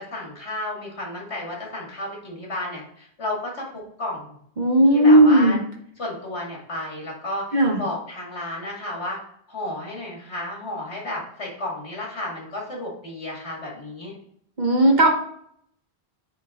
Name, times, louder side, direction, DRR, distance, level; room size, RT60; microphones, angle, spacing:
voice 1, 0.0-4.4 4.9-5.6 6.0-9.2 9.5-14.1, left 1 dB, 75° left, -2 dB, 2.5 m, -32 dB
voice 2, 4.6-5.6 7.5-7.8 14.6-15.1, right 1 dB, 45° right, 2 dB, 1.2 m, -15 dB
9.3 x 3.8 x 3.7 m, 0.67 s
omnidirectional pair, 1.1 m